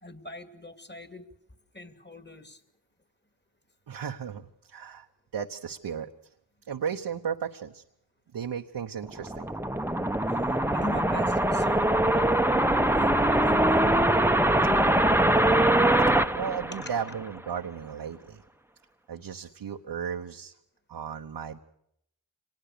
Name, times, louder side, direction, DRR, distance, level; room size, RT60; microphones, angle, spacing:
voice 1, 0.0-1.2 1.7-2.6 10.7-12.3 12.6-15.2 16.8-16.9, left 1 dB, 25° left, 9 dB, 2.6 m, -41 dB
voice 2, 3.9-5.1 5.3-6.1 6.7-7.8 8.3-9.6 16.1-18.4 19.1-20.5 20.9-21.6, right 7 dB, 75° right, 3 dB, 1.1 m, -35 dB
sound 1, 9.0-17.4, right 1 dB, 5° right, 1.0 m, -23 dB
24.5 x 20.0 x 6.9 m, 0.73 s
cardioid pair, 40°, 40 cm